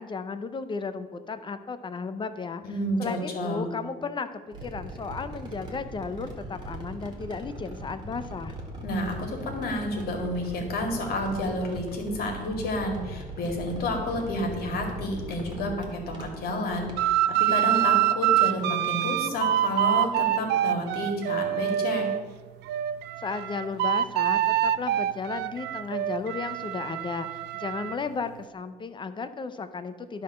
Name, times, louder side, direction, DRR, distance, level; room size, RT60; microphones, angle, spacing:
voice 1, 0.0-2.6 3.0-8.5 23.2-30.2, left 5 dB, 30° left, 11 dB, 0.5 m, -34 dB
voice 2, 2.6-3.7 8.8-22.0, left 1 dB, 65° left, 2 dB, 2.0 m, -30 dB
sound 1, 4.5-17.1, right 1 dB, 25° right, 1.9 m, -40 dB
sound 2, 17.0-22.2 22.7-28.0, right 12 dB, 80° right, 0.4 m, -26 dB
11.0 x 3.7 x 6.5 m, 1.3 s
cardioid pair, 110°, 17 cm